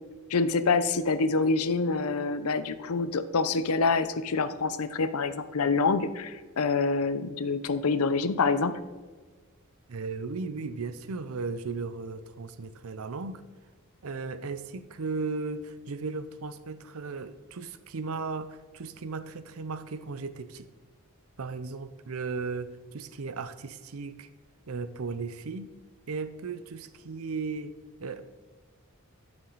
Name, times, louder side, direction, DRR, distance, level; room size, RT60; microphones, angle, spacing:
voice 1, 0.3-8.7, left 4 dB, 90° left, 12 dB, 0.6 m, -26 dB
voice 2, 9.9-13.4 14.0-20.7 21.4-24.3 24.7-25.7 26.1-28.3, right 4 dB, 80° right, 13 dB, 0.6 m, -36 dB
11.0 x 7.1 x 4.0 m, 1.4 s
head